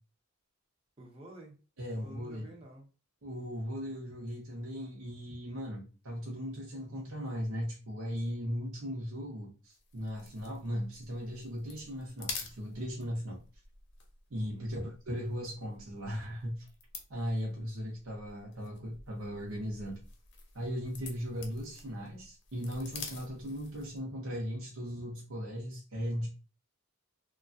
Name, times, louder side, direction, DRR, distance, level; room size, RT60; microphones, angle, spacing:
voice 1, 1.0-1.6 1.9-2.9 14.5-14.9 17.5-17.7, right 1 dB, 25° right, 0.6 m, -51 dB
voice 2, 1.8-2.5 3.2-13.4 14.3-16.7 17.1-20.0 20.5-26.3, equal, 70° right, 0.7 m, -38 dB
sound 1, 9.7-24.1, left 5 dB, 55° left, 0.6 m, -49 dB
3.1 x 2.3 x 2.5 m
head